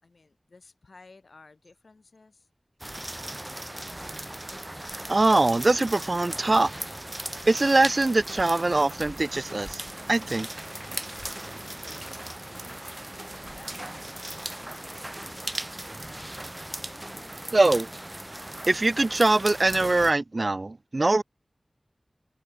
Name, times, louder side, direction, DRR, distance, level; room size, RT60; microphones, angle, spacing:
voice 1, 0.0-2.5 10.9-15.3, left 3 dB, 80° left, 5.8 m, -55 dB
sound 1, 2.8-20.1, right 1 dB, 20° right, 2.6 m, -38 dB
voice 2, 5.1-6.7 7.5-9.8 10.1-10.5 17.5-17.9 18.7-21.2, right 2 dB, 50° right, 0.3 m, -22 dB
wide cardioid pair, 70°, 0 cm